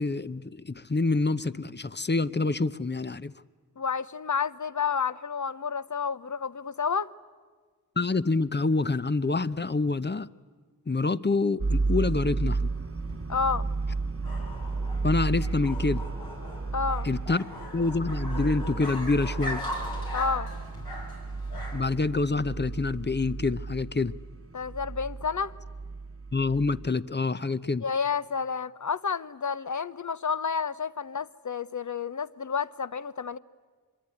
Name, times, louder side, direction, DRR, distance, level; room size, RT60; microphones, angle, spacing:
voice 1, 0.0-3.3 8.0-10.3 10.9-12.7 15.0-16.0 17.0-17.5 17.7-19.7 21.7-24.1 26.3-27.8, left 3 dB, 30° left, 0.8 m, -27 dB
voice 2, 3.8-7.1 13.3-13.7 16.7-17.1 20.1-20.5 24.5-25.5 27.8-33.4, left 6 dB, 55° left, 0.9 m, -30 dB
sound 1, 11.6-26.9, right 3 dB, 40° right, 1.3 m, -33 dB
sound 2, 12.6-22.0, left 1 dB, 80° left, 6.7 m, -40 dB
25.0 x 22.0 x 9.8 m
cardioid pair, 40°, 36 cm